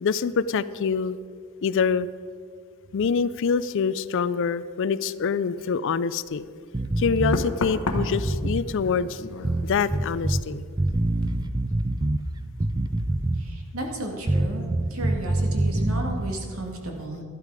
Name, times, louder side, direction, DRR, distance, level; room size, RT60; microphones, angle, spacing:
voice 1, 0.0-1.2 1.6-2.1 2.9-6.4 7.0-9.2 9.6-10.6, left 6 dB, 60° left, 16 dB, 0.4 m, -25 dB
Knock, 6.3-6.5 7.3-10.8 11.1-11.5, left 2 dB, 80° left, 1.1 m, -34 dB
sound 1, 6.7-7.4 7.9-8.7 9.4-10.4 10.8-12.2 12.6-13.6 14.3-16.3, right 1 dB, 20° right, 0.4 m, -25 dB
voice 2, 13.4-17.2, right 1 dB, 70° right, 1 dB, 2.2 m, -33 dB
12.5 x 11.5 x 4.9 m, 2.1 s
head